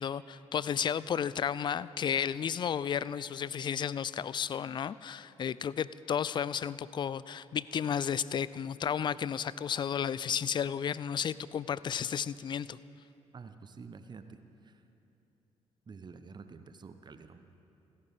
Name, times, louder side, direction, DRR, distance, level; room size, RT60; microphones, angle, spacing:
voice 1, 0.0-12.8, left 8 dB, 30° left, 19 dB, 0.4 m, -33 dB
voice 2, 13.3-14.4 14.6-14.8 15.9-17.6, right 5 dB, 30° right, 9 dB, 0.9 m, -49 dB
27.0 x 14.5 x 3.6 m, 2.9 s
figure-of-eight pair, 45°, 15 cm